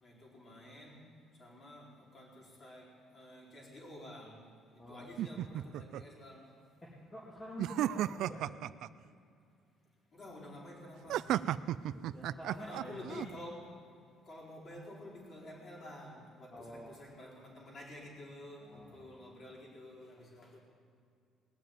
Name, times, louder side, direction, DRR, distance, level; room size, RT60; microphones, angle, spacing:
voice 1, 0.0-1.1 1.4-4.4 4.9-6.5 10.1-11.3 12.6-13.7 14.3-20.6, left 1 dB, 35° left, -4 dB, 4.5 m, -50 dB
voice 2, 4.8-5.6 6.8-8.5 11.1-11.4 11.9-13.3 16.5-17.1 18.6-19.5, equal, 20° left, -7 dB, 2.4 m, -49 dB
sound 1, 5.2-6.0 7.6-8.9 11.1-13.3, right 12 dB, 60° right, 0.3 m, -34 dB
19.5 x 7.1 x 9.4 m, 2.3 s
cardioid pair, 165°, 0 cm